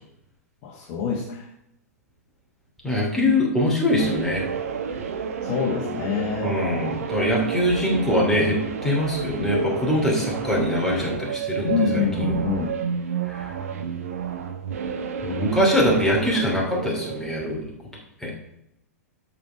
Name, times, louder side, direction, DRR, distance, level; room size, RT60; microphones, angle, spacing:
voice 1, 0.6-1.5 5.4-6.5 11.7-12.7, left 6 dB, 40° left, -1 dB, 1.5 m, -26 dB
voice 2, 2.8-4.5 6.4-12.4 13.3-13.4 15.2-17.7 18.2-18.3, left 1 dB, 5° left, -3 dB, 2.9 m, -23 dB
sound 1, 4.0-17.3, right 7 dB, 65° right, 1.1 m, -30 dB
8.2 x 6.1 x 4.8 m, 0.80 s
figure-of-eight pair, 105°, 8 cm